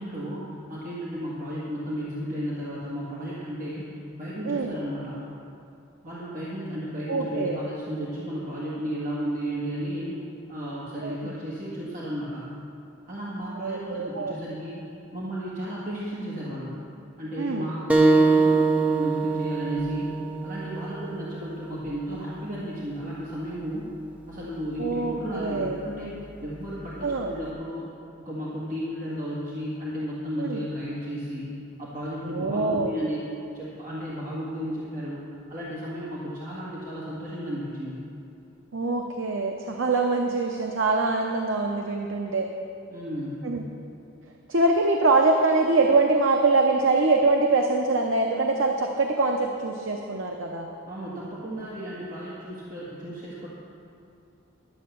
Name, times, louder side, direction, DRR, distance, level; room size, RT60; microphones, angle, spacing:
voice 1, 0.0-5.2 6.0-10.1 10.5-12.5 13.1-14.8 15.1-16.8 17.2-20.1 20.4-23.9 24.3-27.9 28.2-31.5 31.8-33.3 33.5-38.0 42.9-43.5 50.9-53.5, equal, 40° right, -8 dB, 1.8 m, -33 dB
voice 2, 4.4-4.8 7.1-7.6 11.0-11.3 13.6-14.4 17.4-17.7 24.8-25.8 27.0-27.3 30.4-30.6 32.2-32.9 38.7-42.5 43.4-43.6 44.5-50.7, right 3 dB, 70° right, 3 dB, 0.7 m, -24 dB
sound 1, 17.9-23.0, right 3 dB, 5° right, 0.5 m, -24 dB
11.5 x 7.6 x 6.8 m, 2.6 s
head